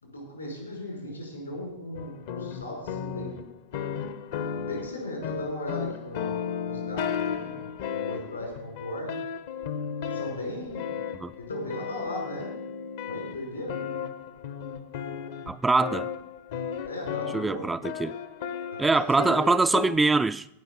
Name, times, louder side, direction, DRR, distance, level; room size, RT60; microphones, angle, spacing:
voice 1, 0.0-3.4 4.7-6.3 6.7-9.2 10.0-11.0 11.5-12.5 13.0-13.7 16.9-17.7 18.7-19.4, left 1 dB, 80° left, 5.2 m, -37 dB
sound 1, 1.9-20.0, left 7 dB, 55° left, 0.9 m, -34 dB
voice 2, 15.5-16.1 17.3-18.1 18.8-20.5, right 3 dB, 10° right, 0.4 m, -23 dB
15.5 x 5.8 x 7.2 m
figure-of-eight pair, 90°, 0 cm